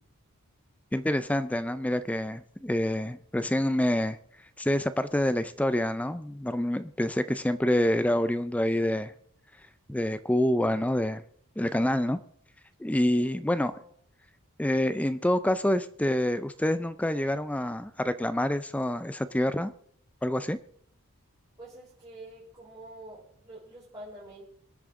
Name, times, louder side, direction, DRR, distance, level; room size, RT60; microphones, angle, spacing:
voice 1, 0.9-4.2 4.6-9.1 9.9-11.2 11.6-12.2 12.8-13.7 14.6-19.7 20.2-20.6, left 1 dB, 5° left, 13 dB, 0.4 m, -27 dB
voice 2, 13.4-13.9 21.6-24.4, right 1 dB, 20° right, -7 dB, 4.3 m, -47 dB
25.5 x 8.6 x 3.7 m, 0.64 s
head